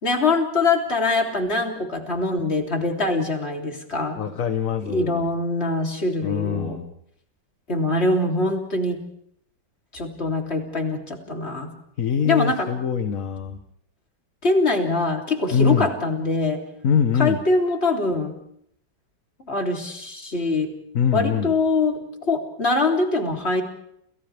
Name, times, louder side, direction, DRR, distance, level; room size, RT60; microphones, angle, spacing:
voice 1, 0.0-4.2 4.8-6.8 7.7-9.0 9.9-11.7 12.2-12.7 14.4-16.6 17.2-18.3 19.5-20.7 21.1-23.6, left 3 dB, 35° left, 2 dB, 3.5 m, -23 dB
voice 2, 4.2-5.3 6.2-6.9 12.0-13.6 15.5-15.9 16.8-17.4 20.9-21.5, left 7 dB, 55° left, 8 dB, 1.5 m, -23 dB
30.0 x 29.5 x 3.4 m, 0.68 s
omnidirectional pair, 1.9 m